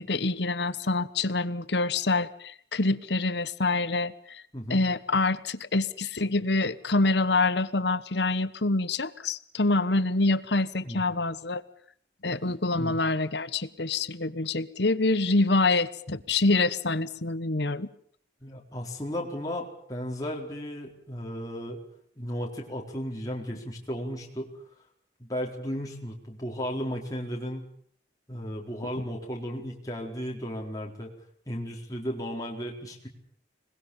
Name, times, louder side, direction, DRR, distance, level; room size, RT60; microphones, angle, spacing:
voice 1, 0.0-4.4 4.7-11.6 12.2-17.9, left 3 dB, 70° left, 16 dB, 1.2 m, -26 dB
voice 2, 18.4-21.8 22.2-24.6 25.2-27.6 28.3-31.1 31.5-33.1, equal, 20° left, -1 dB, 4.3 m, -35 dB
26.0 x 21.0 x 7.2 m, 0.62 s
head